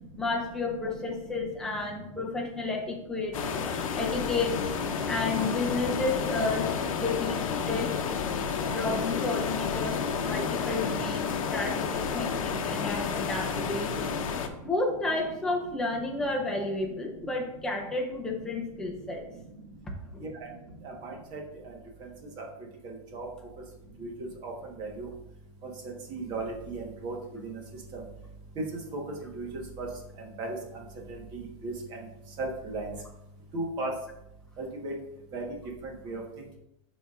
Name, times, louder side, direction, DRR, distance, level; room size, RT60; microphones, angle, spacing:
voice 1, 0.2-3.4 4.0-4.7 5.0-6.7 7.0-8.1 8.7-14.2 14.6-19.2 20.1-20.3, left 3 dB, 5° left, -1 dB, 0.7 m, -31 dB
sound 1, 3.3-14.5, left 6 dB, 80° left, 0.8 m, -31 dB
voice 2, 20.8-21.4 22.4-22.5 22.8-23.3 24.0-24.1 24.4-24.5 24.8-25.1 26.1-27.1 27.4-27.5 28.9-29.0 29.3-29.5 29.8-29.9 30.4-30.6 31.3-31.7 32.4-32.9 33.5-33.9 34.6-34.9 35.3-35.4 36.0-36.2, right 2 dB, 25° right, 0 dB, 1.2 m, -35 dB
11.5 x 4.1 x 2.4 m, 0.84 s
supercardioid pair, 175°, 17 cm